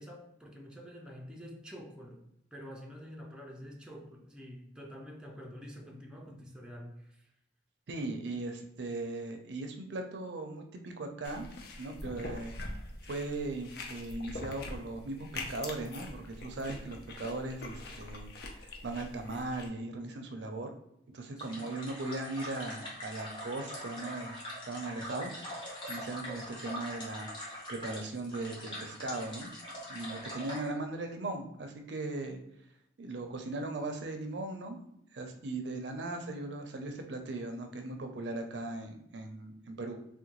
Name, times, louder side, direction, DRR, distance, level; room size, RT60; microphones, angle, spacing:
voice 1, 0.0-2.2 2.5-7.3 21.4-21.7, equal, 5° right, 0.5 m, -47 dB
voice 2, 7.9-12.5 13.1-18.3 18.6-20.8 21.1-24.3 24.7-25.3 25.9-29.5 29.9-32.4 33.0-34.8 35.1-40.0, right 2 dB, 70° right, 0.5 m, -38 dB
sound 1, 11.2-19.7, left 2 dB, 60° left, 0.5 m, -44 dB
sound 2, 21.4-30.7, equal, 25° left, 1.0 m, -43 dB
3.6 x 2.2 x 2.9 m
head